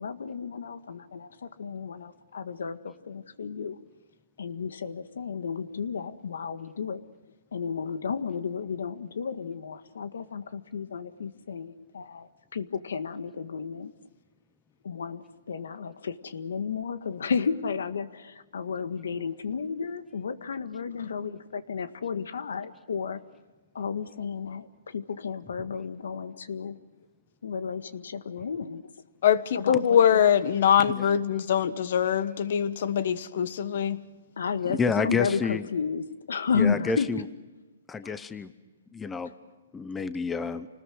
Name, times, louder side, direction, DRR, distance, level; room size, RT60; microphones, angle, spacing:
voice 1, 0.0-3.8 4.4-7.0 7.5-13.9 14.8-23.2 23.8-26.8 27.4-28.8 29.5-30.2 34.4-37.1 38.0-38.2 39.2-39.3, left 6 dB, 80° left, 10 dB, 1.8 m, -32 dB
voice 2, 29.2-34.0, left 9 dB, 50° left, 13 dB, 1.5 m, -23 dB
voice 3, 34.7-35.7 36.5-37.2 37.9-38.5 38.9-39.3 39.7-40.7, left 5 dB, 10° left, 12 dB, 0.8 m, -29 dB
29.0 x 20.0 x 6.5 m, 1.2 s
hypercardioid pair, 160°, 0 cm